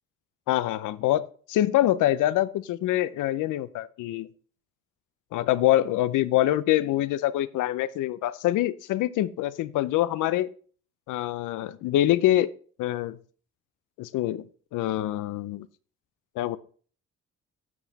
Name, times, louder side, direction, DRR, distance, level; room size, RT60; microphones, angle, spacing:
voice 1, 0.5-4.3 5.3-10.5 11.1-12.5 12.8-13.2 14.0-14.4 14.7-15.7 16.4-16.6, left 14 dB, 85° left, 16 dB, 0.7 m, -25 dB
11.0 x 7.1 x 4.1 m, 0.43 s
cardioid pair, 90°, 30 cm